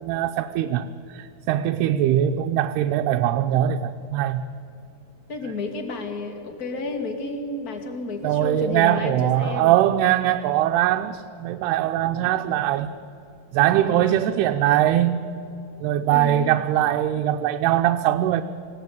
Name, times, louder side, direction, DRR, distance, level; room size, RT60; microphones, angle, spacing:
voice 1, 0.0-4.4 8.2-12.9 13.5-15.3 15.8-18.4, right 12 dB, 85° right, 2.7 m, -21 dB
voice 2, 5.3-9.8 13.8-14.3 16.1-16.6, left 3 dB, 30° left, 2.2 m, -31 dB
26.0 x 17.5 x 9.4 m
omnidirectional pair, 4.6 m